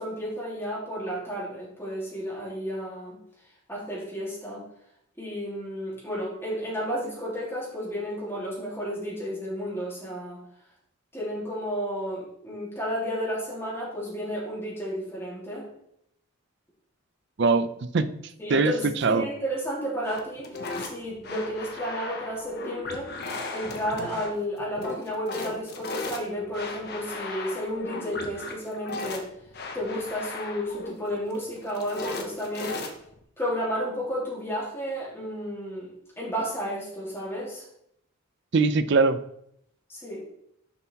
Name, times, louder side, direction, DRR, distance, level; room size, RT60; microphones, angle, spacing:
voice 1, 0.0-3.2 3.7-4.6 5.2-10.4 11.1-15.7 18.4-20.5 20.8-23.1 23.5-29.3 29.7-32.8 33.4-35.9 36.2-37.7 39.9-40.3, equal, 10° left, -6 dB, 3.0 m, -32 dB
voice 2, 17.4-18.2 18.5-18.7 19.0-19.3 38.5-39.2, right 4 dB, 55° right, 12 dB, 0.5 m, -21 dB
sound 1, 20.0-33.2, left 3 dB, 50° left, 1.2 m, -36 dB
7.0 x 5.5 x 4.5 m, 0.73 s
head